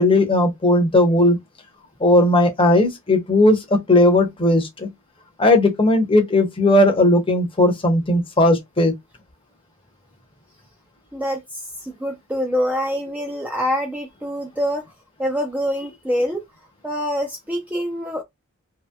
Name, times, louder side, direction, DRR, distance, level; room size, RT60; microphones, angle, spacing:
voice 1, 0.0-1.4 2.0-4.9 5.4-8.9, left 1 dB, 25° left, 0.7 m, -17 dB
voice 2, 11.1-14.9 15.2-16.4 16.8-18.2, equal, 5° right, 0.4 m, -25 dB
2.9 x 2.8 x 2.2 m
head